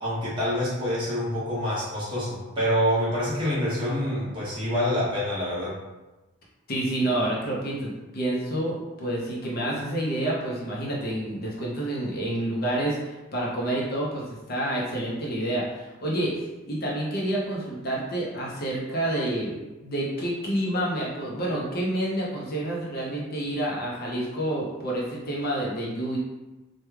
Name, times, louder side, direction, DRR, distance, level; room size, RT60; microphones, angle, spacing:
voice 1, 0.0-5.8, equal, 20° right, -9 dB, 1.1 m, -26 dB
voice 2, 6.7-19.5 19.8-26.2, right 1 dB, 45° left, -4 dB, 0.6 m, -28 dB
3.1 x 2.2 x 3.4 m, 1.1 s
head